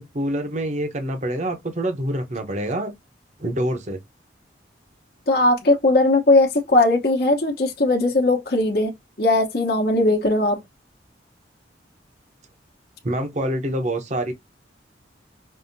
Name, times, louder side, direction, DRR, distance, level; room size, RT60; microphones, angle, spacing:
voice 1, 0.0-2.9 3.4-4.0 13.0-14.3, right 1 dB, 40° right, 0.9 m, -26 dB
voice 2, 5.3-8.9 9.2-10.6, left 2 dB, 55° left, 1.0 m, -19 dB
5.5 x 2.7 x 2.7 m
head